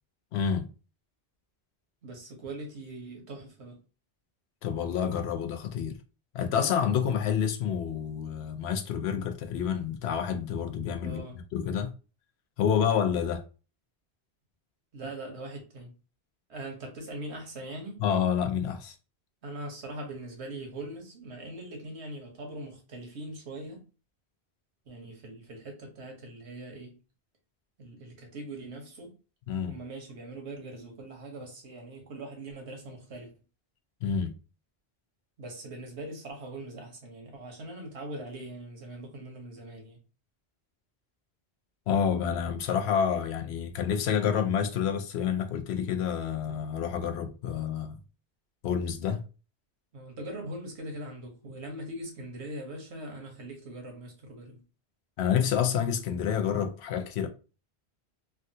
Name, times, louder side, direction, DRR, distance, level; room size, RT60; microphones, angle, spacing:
voice 1, 0.3-0.7 4.6-6.0 6.3-11.2 11.5-11.9 12.6-13.4 18.0-18.9 29.5-29.8 34.0-34.3 41.9-48.0 48.6-49.2 55.2-57.3, left 8 dB, 75° left, 0.8 m, -28 dB
voice 2, 2.0-3.8 11.0-11.4 14.9-15.9 16.5-18.0 19.4-23.8 24.8-27.0 27.8-29.2 29.7-33.3 35.4-40.0 49.9-54.6, right 1 dB, 90° right, 1.3 m, -41 dB
3.4 x 2.2 x 2.7 m
omnidirectional pair, 1.1 m